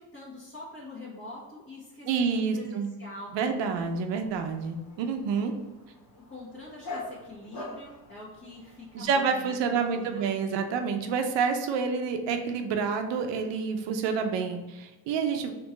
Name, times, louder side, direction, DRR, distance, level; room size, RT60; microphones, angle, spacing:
voice 1, 0.0-3.6 6.1-10.2, left 2 dB, 30° left, -7 dB, 1.3 m, -45 dB
voice 2, 2.1-2.9 3.3-5.5 8.9-15.5, right 5 dB, 80° right, 5 dB, 0.8 m, -28 dB
Dog, 3.7-9.1, left 2 dB, 75° left, 1.5 m, -44 dB
3.7 x 2.8 x 4.0 m, 1.2 s
cardioid pair, 85°, 43 cm